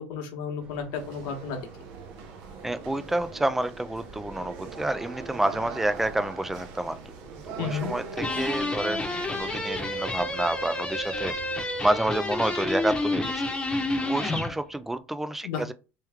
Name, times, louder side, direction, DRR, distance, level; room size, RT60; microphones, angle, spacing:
voice 1, 0.0-1.6 7.6-7.9 15.4-15.6, left 6 dB, 75° left, 1.1 m, -32 dB
sound 1, 0.6-14.0, right 2 dB, 25° right, 1.4 m, -47 dB
sound 2, 0.9-10.4, right 5 dB, 70° right, 0.8 m, -42 dB
voice 2, 2.6-7.0 7.6-13.4 14.0-15.7, right 1 dB, 5° right, 0.3 m, -29 dB
sound 3, 8.2-14.5, left 2 dB, 15° left, 0.9 m, -29 dB
3.3 x 3.0 x 3.5 m
supercardioid pair, 135°, 5 cm